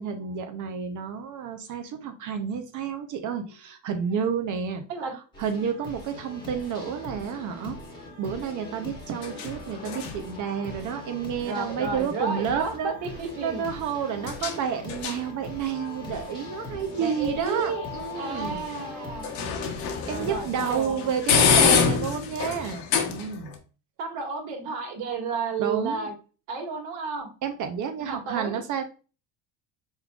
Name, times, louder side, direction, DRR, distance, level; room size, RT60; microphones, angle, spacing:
voice 1, 0.0-4.8 5.4-7.8 8.2-12.9 13.4-18.6 20.1-23.6 25.6-26.1 27.4-28.8, right 7 dB, 45° right, 0.7 m, -30 dB
sound 1, 5.3-20.8, left 1 dB, 10° left, 1.3 m, -42 dB
sound 2, 6.1-23.6, left 6 dB, 65° left, 1.1 m, -30 dB
voice 2, 11.4-13.7 17.0-17.9 18.2-19.3 20.0-21.1 24.0-26.1 26.5-27.3 28.0-28.6, right 4 dB, 75° right, 1.8 m, -32 dB
5.3 x 3.7 x 2.3 m
cardioid pair, 130°, 43 cm